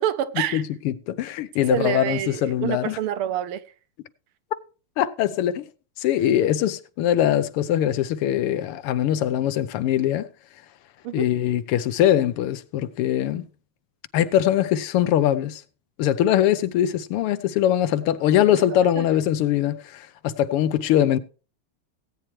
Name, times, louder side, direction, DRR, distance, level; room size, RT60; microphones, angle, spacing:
voice 1, 0.0-0.6 1.6-3.6 11.0-11.3 18.7-19.1, right 11 dB, 80° right, 1.6 m, -27 dB
voice 2, 0.5-3.0 5.0-5.6 6.0-10.3 11.1-13.4 14.1-15.6 16.0-21.2, left 11 dB, 90° left, 1.7 m, -22 dB
18.0 x 8.8 x 3.1 m
omnidirectional pair, 2.4 m